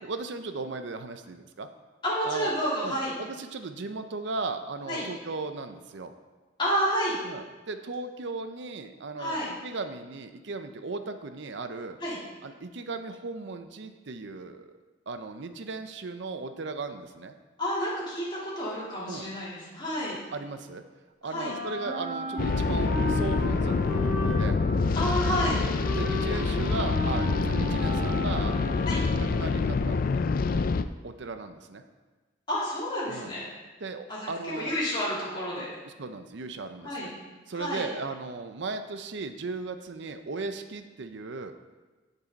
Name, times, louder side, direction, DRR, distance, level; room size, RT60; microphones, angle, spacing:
voice 1, 0.0-1.7 2.2-2.5 2.8-6.1 7.3-12.0 12.4-14.8 15.1-17.3 19.1-19.3 20.3-20.8 21.2-24.6 25.6-30.0 30.5-30.6 31.0-31.8 33.1-33.3 33.8-34.7 35.5-37.1 37.5-41.5, right 3 dB, 65° right, 8 dB, 0.6 m, -37 dB
voice 2, 2.0-3.1 4.9-5.0 6.6-7.2 9.2-9.5 12.0-12.2 17.6-20.2 21.2-21.5 24.9-25.6 28.8-29.0 32.5-33.5 34.1-35.7 36.8-37.1 37.5-37.9, equal, 25° left, -8 dB, 3.3 m, -30 dB
Wind instrument woodwind instrument, 21.3-29.5, equal, 35° right, 2.0 m, -36 dB
sound 1, 22.4-30.8, left 4 dB, 45° left, 0.4 m, -26 dB
15.5 x 5.5 x 4.0 m, 1.3 s
head